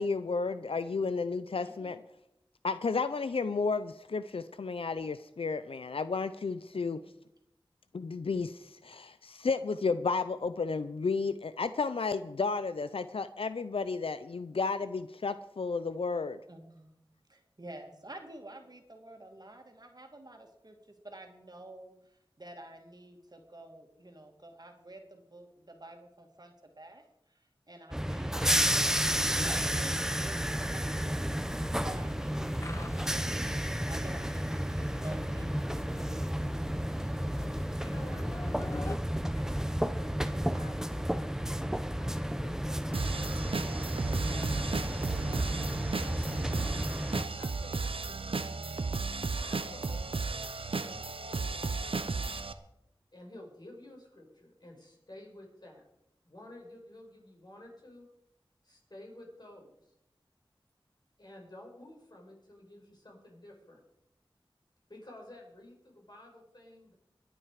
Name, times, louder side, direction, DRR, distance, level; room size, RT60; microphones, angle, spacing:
voice 1, 0.0-2.0 2.6-7.0 7.9-16.4, left 4 dB, 85° left, 13 dB, 0.5 m, -32 dB
voice 2, 1.6-1.9 6.7-7.1 16.5-16.9 17.3-31.3 31.8-33.4 33.8-35.8, right 1 dB, 45° right, 3 dB, 2.4 m, -50 dB
sound 1, 27.9-47.2, equal, 5° right, 0.9 m, -32 dB
sound 2, 31.5-39.0, left 2 dB, 30° left, 0.8 m, -43 dB
voice 3, 37.8-38.3 38.9-43.5 44.3-45.6 47.1-48.4 49.3-50.6 51.3-52.2 53.1-55.8 56.3-58.1 58.6-59.9 61.2-63.8 64.9-66.9, left 1 dB, 50° left, -1 dB, 5.8 m, -52 dB
sound 3, 42.9-52.5, right 4 dB, 75° right, 0.9 m, -34 dB
22.5 x 8.9 x 4.9 m, 0.84 s
wide cardioid pair, 45°, 9 cm